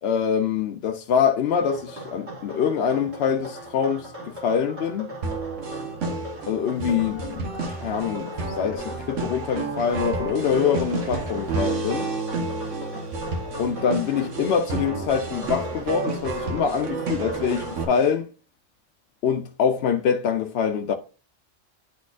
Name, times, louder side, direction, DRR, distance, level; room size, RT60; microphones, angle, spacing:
voice 1, 0.0-5.1 6.5-12.1 13.6-18.3 19.2-20.9, left 7 dB, 65° left, 0.7 m, -25 dB
sound 1, 1.6-17.9, right 1 dB, 60° right, 2.7 m, -39 dB
sound 2, 5.2-17.9, right 3 dB, 80° right, 1.4 m, -30 dB
10.0 x 4.1 x 2.4 m
omnidirectional pair, 1.3 m